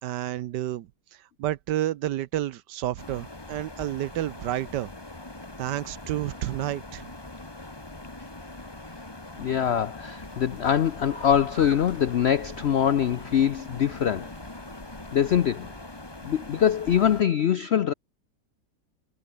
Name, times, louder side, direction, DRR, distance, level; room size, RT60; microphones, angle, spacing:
voice 1, 0.0-0.9 1.4-4.9 5.6-7.1, right 13 dB, 80° right, 1.3 m, -30 dB
sound 1, 3.0-17.2, left 2 dB, 15° left, 1.8 m, -42 dB
voice 2, 9.4-14.3 15.1-15.7 16.2-17.9, left 9 dB, 80° left, 0.5 m, -23 dB
sound 2, 10.2-15.5, left 1 dB, 35° left, 7.8 m, -46 dB
omnidirectional pair, 1.9 m